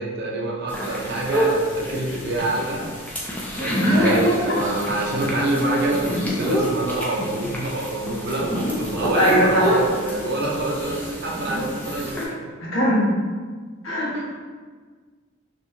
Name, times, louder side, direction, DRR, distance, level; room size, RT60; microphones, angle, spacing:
voice 1, 0.0-3.1 3.6-12.5 14.1-14.2, right 2 dB, 50° right, -2 dB, 0.6 m, -26 dB
sound 1, 0.7-12.3, equal, 5° left, 0.5 m, -27 dB
voice 2, 9.1-9.7 12.7-13.1 13.8-14.2, equal, 75° left, -5 dB, 1.1 m, -20 dB
4.4 x 2.9 x 2.7 m, 1.5 s
head